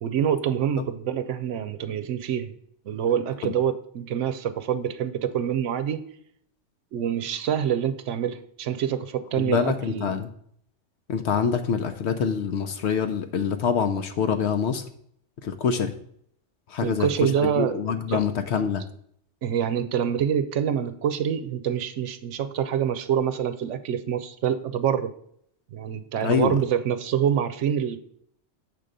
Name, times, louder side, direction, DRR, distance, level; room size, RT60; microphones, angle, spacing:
voice 1, 0.0-2.5 2.9-6.0 6.9-10.1 16.8-18.2 19.4-25.1 25.7-28.0, right 9 dB, 80° right, 11 dB, 0.9 m, -26 dB
voice 2, 9.4-10.3 11.1-14.8 15.4-16.0 16.7-18.8 26.2-26.6, left 6 dB, 70° left, 7 dB, 0.9 m, -25 dB
7.7 x 3.8 x 6.6 m, 0.68 s
omnidirectional pair, 1.2 m